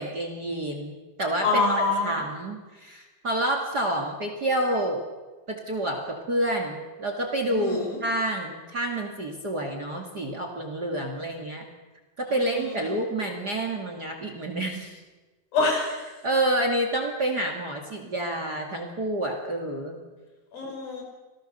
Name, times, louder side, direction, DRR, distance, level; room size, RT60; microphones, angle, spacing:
voice 1, 0.0-5.0 5.5-11.7 12.2-15.0 16.2-20.0, right 1 dB, 30° right, 3 dB, 2.3 m, -28 dB
voice 2, 1.4-2.2 7.5-8.0 12.3-13.0 15.5-16.1 20.5-21.0, left 3 dB, 80° left, 0 dB, 7.4 m, -26 dB
27.5 x 18.0 x 6.9 m, 1.2 s
omnidirectional pair, 4.1 m